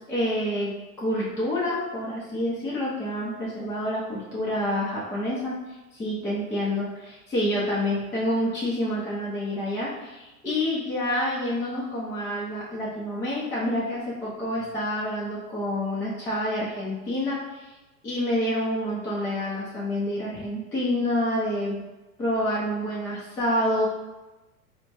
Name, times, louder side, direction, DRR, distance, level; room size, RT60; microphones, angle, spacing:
voice 1, 0.1-5.5 5.9-17.7 18.0-21.8 22.2-23.9, left 1 dB, 5° left, -7 dB, 0.3 m, -28 dB
4.2 x 2.2 x 2.8 m, 1.1 s
figure-of-eight pair, 90°, 43 cm